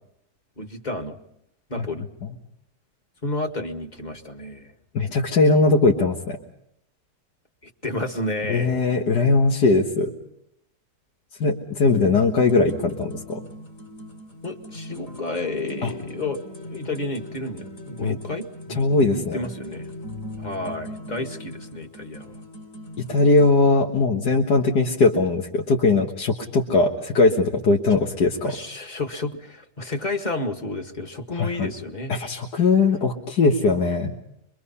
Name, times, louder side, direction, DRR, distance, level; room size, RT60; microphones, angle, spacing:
voice 1, 0.6-1.2 1.7-2.0 3.2-4.7 7.6-8.8 14.4-19.9 20.4-22.4 27.9-28.0 28.4-32.2, left 2 dB, 25° left, 5 dB, 1.8 m, -31 dB
voice 2, 4.9-6.4 8.5-10.1 11.4-13.4 15.8-15.9 18.0-18.2 18.8-19.4 23.1-28.6 31.4-31.7 32.1-34.1, left 3 dB, 85° left, 1 dB, 2.1 m, -20 dB
sound 1, 11.8-23.5, left 1 dB, 50° left, 3.3 m, -40 dB
26.0 x 23.0 x 5.7 m, 0.79 s
omnidirectional pair, 1.7 m